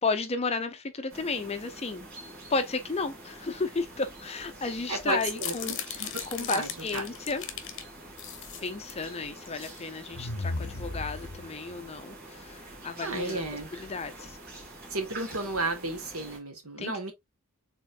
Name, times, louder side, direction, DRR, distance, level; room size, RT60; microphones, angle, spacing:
voice 1, 0.0-2.1 2.5-7.4 8.6-13.4 13.7-14.4 16.8-17.1, left 4 dB, 30° left, 0.5 m, -33 dB
sound 1, 1.1-16.4, right 2 dB, 45° right, 2.1 m, -46 dB
voice 2, 4.9-7.0 13.0-13.7 14.9-17.1, right 2 dB, 75° right, 1.4 m, -33 dB
sound 2, 5.1-7.8 8.2-9.0 9.5-9.8 10.1-11.8, left 5 dB, 55° left, 0.8 m, -36 dB
4.3 x 3.6 x 2.4 m
head